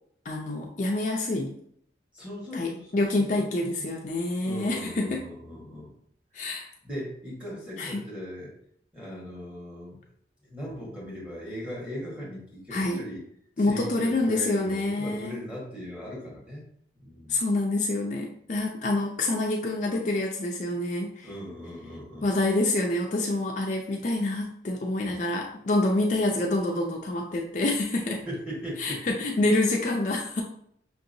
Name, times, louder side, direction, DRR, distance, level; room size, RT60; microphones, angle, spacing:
voice 1, 0.3-1.6 2.5-5.2 6.3-6.7 7.8-8.0 12.7-13.1 13.6-15.4 17.3-21.3 22.2-28.2 28.8-30.4, left 2 dB, 40° left, 0 dB, 0.4 m, -27 dB
voice 2, 2.1-3.9 4.4-5.9 6.8-8.5 8.9-10.0 10.4-13.2 13.6-16.6 16.9-17.5 21.2-22.3 25.1-25.2 28.3-29.0, equal, 5° right, -5 dB, 1.3 m, -39 dB
5.7 x 2.8 x 2.6 m, 0.68 s
head